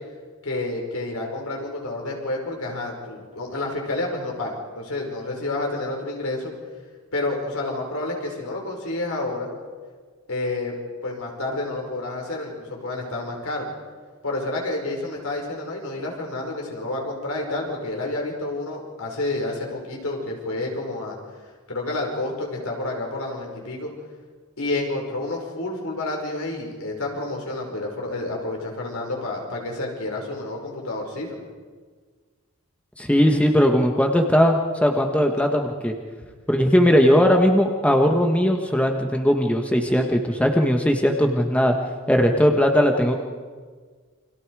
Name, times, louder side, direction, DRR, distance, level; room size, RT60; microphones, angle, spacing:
voice 1, 0.4-6.5 7.1-9.5 10.3-10.8 11.0-13.7 14.2-21.2 21.7-23.9 24.6-31.4, left 2 dB, 70° left, 0 dB, 5.5 m, -29 dB
voice 2, 33.0-35.9 36.5-41.7 42.1-43.2, equal, 5° left, 2 dB, 1.4 m, -19 dB
29.0 x 25.5 x 4.9 m, 1.6 s
head